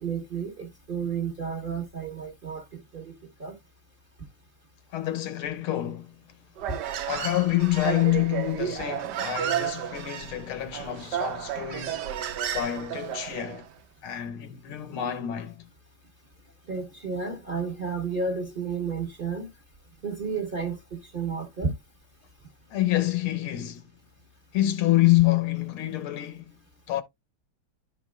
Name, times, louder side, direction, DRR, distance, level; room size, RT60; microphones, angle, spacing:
voice 1, 0.0-2.6 2.9-3.5 16.7-19.5 20.0-21.7, right 5 dB, 30° right, 1.3 m, -32 dB
voice 2, 4.9-6.1 7.1-12.1 12.5-13.6 14.0-15.7 22.7-23.9 24.5-26.6 26.9-27.0, left 15 dB, 80° left, 1.8 m, -27 dB
Human voice, 6.6-13.6, right 10 dB, 65° right, 1.2 m, -32 dB
11.5 x 5.3 x 2.2 m
omnidirectional pair, 2.4 m